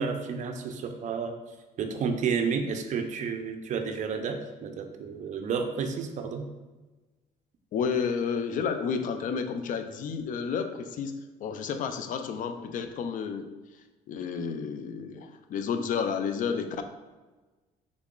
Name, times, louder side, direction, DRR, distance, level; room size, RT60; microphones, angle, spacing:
voice 1, 0.0-1.3 1.8-6.5, right 5 dB, 45° right, 6 dB, 0.4 m, -31 dB
voice 2, 7.7-13.5 14.1-16.8, left 6 dB, 50° left, 8 dB, 0.4 m, -31 dB
3.5 x 2.3 x 3.7 m, 1.2 s
cardioid pair, 110°, 17 cm